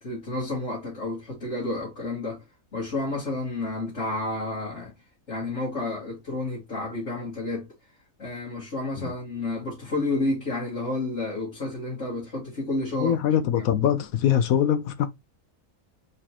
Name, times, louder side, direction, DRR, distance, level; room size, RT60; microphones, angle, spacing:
voice 1, 0.0-2.4 2.7-4.9 5.3-7.7 8.2-13.2 13.5-13.7, left 2 dB, 50° left, 2.2 m, -30 dB
voice 2, 13.0-15.1, left 9 dB, 70° left, 0.9 m, -23 dB
4.4 x 3.4 x 2.9 m
omnidirectional pair, 1.6 m